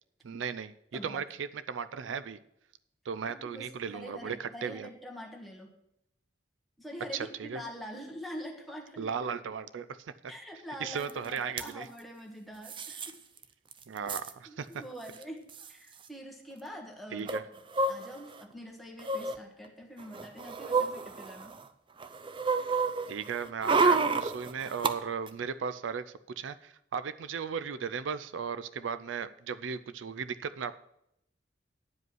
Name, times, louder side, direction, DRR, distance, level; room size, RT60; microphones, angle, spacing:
voice 1, 0.2-0.7 1.0-2.4 3.1-4.9 7.1-7.6 9.0-10.1 10.8-11.9 13.9-14.7 17.1-17.4 23.1-30.8, right 6 dB, 85° right, 14 dB, 0.4 m, -36 dB
voice 2, 0.9-1.2 3.3-5.7 6.8-9.1 10.3-13.2 14.5-17.3 17.9-21.6, equal, ahead, 0 dB, 1.4 m, -45 dB
sound 1, 11.1-11.2 11.4-11.7 12.7-13.1 13.4-13.5 13.7-14.3 15.2-15.3 15.5-15.7 17.3-18.4 19.0-19.4 20.0-21.6 22.0-24.9 25.3-25.4, right 4 dB, 25° right, 0.5 m, -29 dB
9.6 x 5.0 x 7.8 m, 0.79 s
head